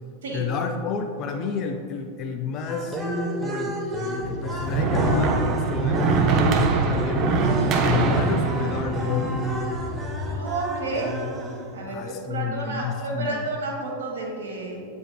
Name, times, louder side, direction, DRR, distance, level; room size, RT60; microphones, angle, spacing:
voice 1, 0.3-3.0 3.4-3.8 4.3-7.4 7.8-9.4 11.9-13.5, left 6 dB, 35° left, 4 dB, 0.3 m, -30 dB
sound 1, 2.6-11.9, left 1 dB, 15° right, 0.9 m, -31 dB
sound 2, 4.2-10.4, right 4 dB, 35° right, 0.5 m, -24 dB
voice 2, 10.3-11.1 11.7-14.9, right 3 dB, 65° right, -1 dB, 1.2 m, -30 dB
8.5 x 5.0 x 2.2 m, 2.5 s
figure-of-eight pair, 90°, 0 cm